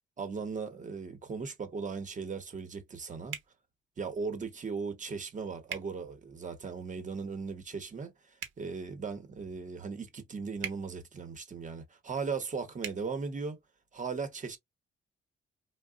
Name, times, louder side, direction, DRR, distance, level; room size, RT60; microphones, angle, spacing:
voice 1, 0.2-3.4 4.0-13.6 13.9-14.6, right 5 dB, 40° right, 1.1 m, -38 dB
sound 1, 3.3-3.5 5.7-5.9 8.3-8.6 10.6-10.8 12.8-13.0, right 9 dB, 80° right, 1.0 m, -39 dB
3.5 x 2.3 x 2.4 m
cardioid pair, 90°, 20 cm